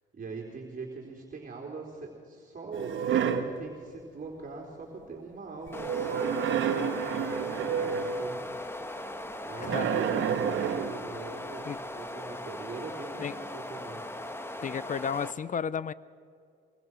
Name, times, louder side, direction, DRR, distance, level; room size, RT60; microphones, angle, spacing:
voice 1, 0.1-2.9 3.3-14.0, right 4 dB, 45° right, 4.0 m, -42 dB
sound 1, 2.7-3.6 5.8-8.3 9.7-11.0, right 7 dB, 75° right, 1.6 m, -29 dB
sound 2, 5.7-15.3, left 1 dB, 10° left, 1.5 m, -39 dB
voice 2, 9.6-10.0 11.7-11.8 13.2-13.3 14.6-15.9, left 7 dB, 40° left, 0.6 m, -33 dB
24.0 x 21.0 x 6.3 m
cardioid pair, 90°, 20 cm